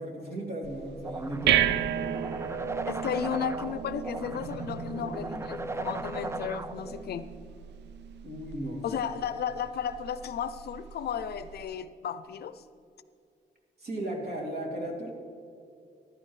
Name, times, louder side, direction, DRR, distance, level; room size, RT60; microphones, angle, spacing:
voice 1, 0.0-1.7 8.2-8.8 13.8-15.1, right 1 dB, 65° right, 0 dB, 2.7 m, -35 dB
sound 1, 0.6-11.6, right 10 dB, 85° right, 0.4 m, -34 dB
sound 2, 1.0-7.0, right 2 dB, 15° right, 0.4 m, -37 dB
voice 2, 2.9-7.3 8.8-12.6, left 8 dB, 65° left, 13 dB, 0.5 m, -34 dB
14.5 x 11.5 x 3.2 m, 2.5 s
cardioid pair, 125°, 18 cm